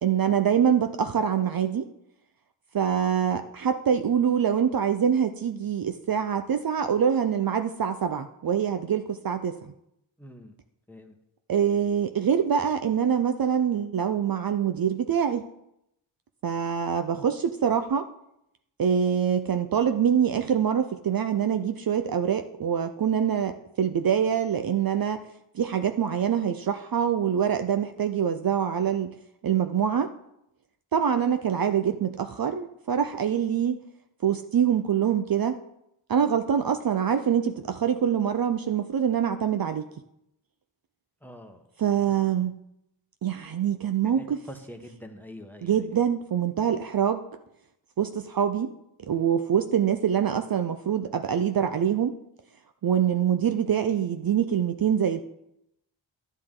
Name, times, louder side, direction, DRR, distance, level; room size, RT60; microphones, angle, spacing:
voice 1, 0.0-1.9 2.7-9.6 11.5-15.4 16.4-18.1 18.8-25.3 25.5-29.1 29.4-30.1 30.9-33.8 34.2-35.6 36.1-39.8 41.8-42.5 43.2-44.4 45.6-47.3 48.0-48.7 49.1-52.1 52.8-55.2, right 8 dB, 50° right, 8 dB, 0.6 m, -25 dB
voice 2, 10.2-10.5 10.9-11.1 41.2-41.6 44.0-45.8, equal, 5° left, 4 dB, 1.1 m, -44 dB
11.5 x 10.0 x 3.8 m, 0.81 s
wide cardioid pair, 115°, 46 cm